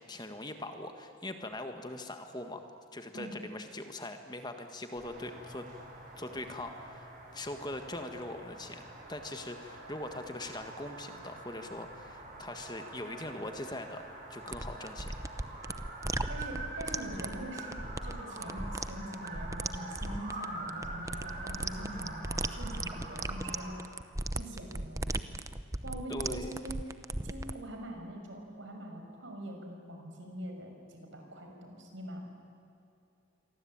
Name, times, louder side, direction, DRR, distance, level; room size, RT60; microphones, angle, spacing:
voice 1, 0.0-2.7 2.9-5.7 6.2-8.8 9.1-15.1 26.1-26.6, left 1 dB, 20° left, 6 dB, 1.5 m, -41 dB
sound 1, 5.0-23.8, right 2 dB, 40° right, 8.0 m, -45 dB
sound 2, 14.5-27.5, right 2 dB, 15° right, 0.7 m, -37 dB
voice 2, 16.3-23.7 24.3-25.4 25.8-26.8 27.2-32.2, right 1 dB, 65° right, 3 dB, 5.8 m, -43 dB
28.5 x 23.5 x 8.8 m, 2.7 s
head